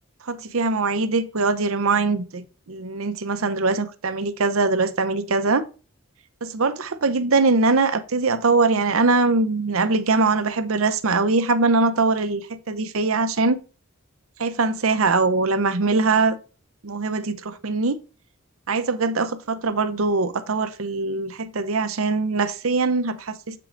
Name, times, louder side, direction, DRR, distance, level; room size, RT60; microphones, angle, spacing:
voice 1, 0.2-5.7 6.4-13.6 14.4-16.4 16.8-18.0 18.7-23.6, right 3 dB, 65° right, 0.7 m, -22 dB
7.7 x 4.7 x 3.8 m
head